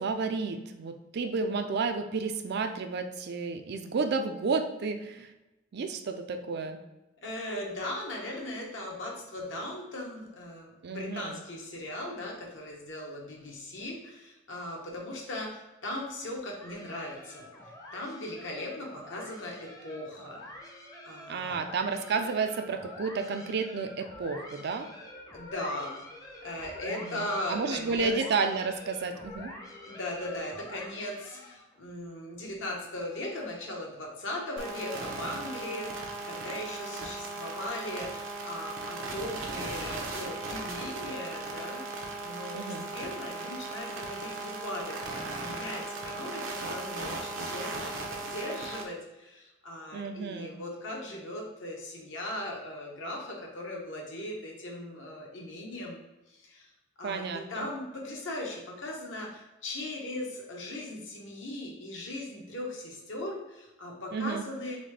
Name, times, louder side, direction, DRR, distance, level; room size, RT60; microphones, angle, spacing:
voice 1, 0.0-5.3 5.7-6.8 10.8-11.4 21.3-24.9 26.9-29.5 42.5-42.9 49.9-50.6 57.0-57.7 64.1-64.4, right 4 dB, 55° right, 7 dB, 0.4 m, -31 dB
voice 2, 7.2-20.4 21.0-21.7 25.3-26.0 26.4-28.1 29.8-56.0 56.3-56.7 57.0-64.8, left 1 dB, 65° left, -1 dB, 1.1 m, -38 dB
sound 1, 16.6-31.7, left 1 dB, 20° left, 0.7 m, -47 dB
sound 2, 34.6-48.8, right 2 dB, 85° right, 0.8 m, -37 dB
4.0 x 3.5 x 3.3 m, 1.0 s
head